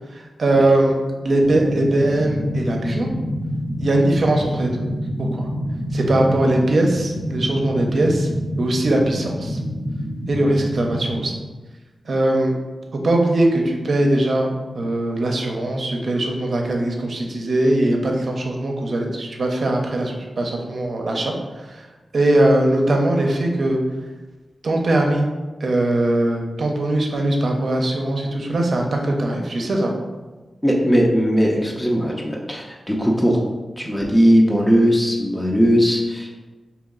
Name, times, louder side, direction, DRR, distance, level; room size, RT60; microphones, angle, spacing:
voice 1, 0.1-3.1 3.8-4.7 5.2-5.5 5.9-8.3 8.6-9.6 10.3-11.3 12.1-12.5 13.0-21.3 22.1-23.8 24.6-25.3 25.6-29.9, right 1 dB, 70° right, 1 dB, 0.6 m, -20 dB
sound 1, 1.4-11.3, equal, 45° left, 1.0 m, -27 dB
voice 2, 30.6-33.4 33.8-36.3, equal, 10° left, -2 dB, 0.6 m, -18 dB
3.0 x 2.9 x 3.7 m, 1.2 s
cardioid pair, 60°, 0 cm